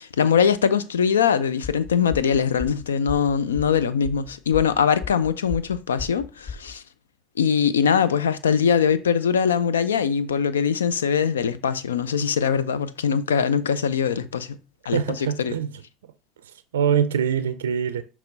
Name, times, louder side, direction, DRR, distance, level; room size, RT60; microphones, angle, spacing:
voice 1, 0.0-6.8 7.4-14.6 14.9-15.5, left 7 dB, 90° left, 0.4 m, -22 dB
sound 1, 1.6-6.7, left 5 dB, 50° left, 1.9 m, -36 dB
voice 2, 14.9-15.7 16.7-18.0, right 8 dB, 85° right, 0.4 m, -23 dB
6.0 x 3.0 x 5.2 m
hypercardioid pair, 70°, 0 cm